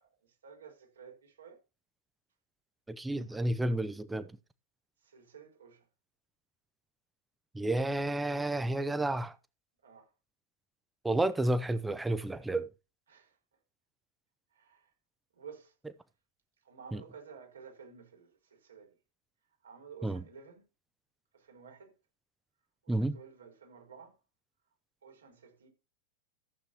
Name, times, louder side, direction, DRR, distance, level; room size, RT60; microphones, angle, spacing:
voice 1, 0.0-1.6 5.0-5.9 9.8-10.1 13.1-13.4 14.5-14.9 15.3-15.7 16.6-19.0 19.6-20.7 21.3-21.9 22.8-24.2 25.0-25.7, right 6 dB, 70° right, 4.9 m, -53 dB
voice 2, 2.9-4.3 7.5-9.4 11.0-12.7 16.9-17.0 20.0-20.2 22.9-23.2, right 1 dB, 10° right, 0.7 m, -31 dB
15.0 x 8.0 x 2.9 m
figure-of-eight pair, 90°, 0 cm